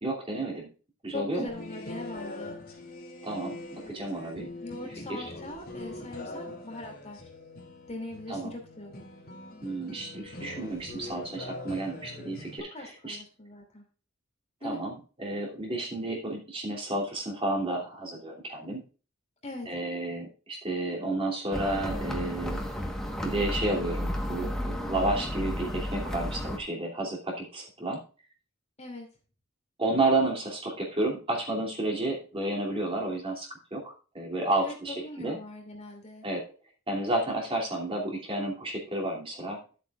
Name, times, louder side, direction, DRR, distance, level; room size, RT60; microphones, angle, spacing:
voice 1, 0.0-0.7 1.0-1.5 3.2-3.6 3.9-4.5 5.1-5.3 6.3-6.5 8.3-8.5 9.6-13.2 14.6-18.8 19.7-22.6 23.2-28.0 29.8-35.4 36.2-36.4 36.9-39.6, right 2 dB, 25° right, -2 dB, 2.8 m, -31 dB
voice 2, 1.1-2.6 4.6-7.3 7.9-9.1 12.7-13.8 14.6-14.8 19.4-19.7 28.8-29.1 34.6-36.3, left 2 dB, 35° left, 2 dB, 2.7 m, -40 dB
sound 1, 1.5-12.6, left 2 dB, 50° left, 2.5 m, -43 dB
sound 2, 21.5-26.6, equal, 5° left, 1.3 m, -32 dB
12.5 x 8.3 x 2.4 m, 0.35 s
head